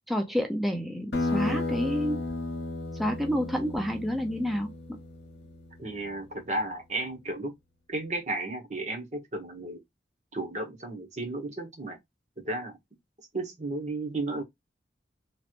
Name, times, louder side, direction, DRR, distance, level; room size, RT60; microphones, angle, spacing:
voice 1, 0.1-2.2 3.0-4.7, equal, ahead, 0.5 m, -29 dB
sound 1, 1.1-6.3, left 2 dB, 65° left, 1.0 m, -34 dB
voice 2, 5.8-7.5 7.9-9.8 10.3-12.0 12.4-12.8 13.3-14.4, right 2 dB, 40° right, 1.1 m, -33 dB
3.1 x 2.9 x 2.5 m
head